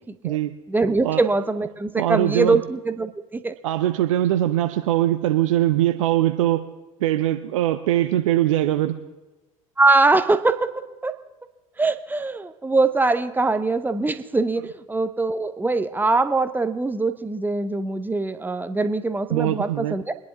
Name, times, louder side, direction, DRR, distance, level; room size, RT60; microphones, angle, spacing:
voice 1, 0.7-3.5 9.8-11.2 11.8-20.1, right 3 dB, 10° right, 10 dB, 0.9 m, -22 dB
voice 2, 2.0-2.6 3.6-6.6 7.0-8.9 19.3-20.0, right 13 dB, 65° right, 8 dB, 0.7 m, -21 dB
24.0 x 10.5 x 3.6 m, 1.1 s
figure-of-eight pair, 75°, 18 cm